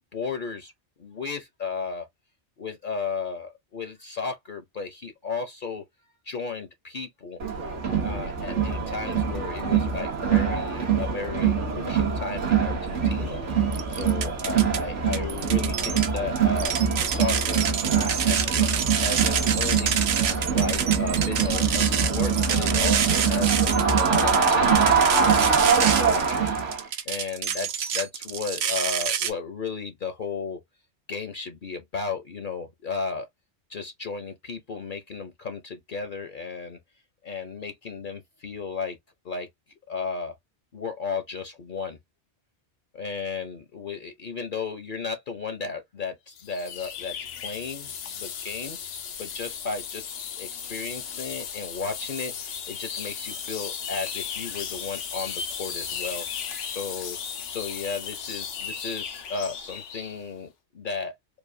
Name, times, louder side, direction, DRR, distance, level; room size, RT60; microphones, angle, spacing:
voice 1, 0.1-0.7 1.0-2.1 2.6-7.4 8.0-16.7 17.0-20.1 20.5-30.6 31.1-33.3 33.7-36.8 37.2-39.0 39.2-39.5 39.9-40.3 40.7-42.0 42.9-50.1 50.4-57.2 57.5-61.1, left 4 dB, 50° left, 0.8 m, -34 dB
Crowd, 7.4-26.8, right 6 dB, 90° right, 1.7 m, -24 dB
sound 1, 13.7-14.8 15.1-29.3, right 8 dB, 65° right, 0.9 m, -28 dB
sound 2, 46.4-60.2, left 7 dB, 90° left, 1.1 m, -35 dB
4.7 x 2.3 x 2.5 m
omnidirectional pair, 1.2 m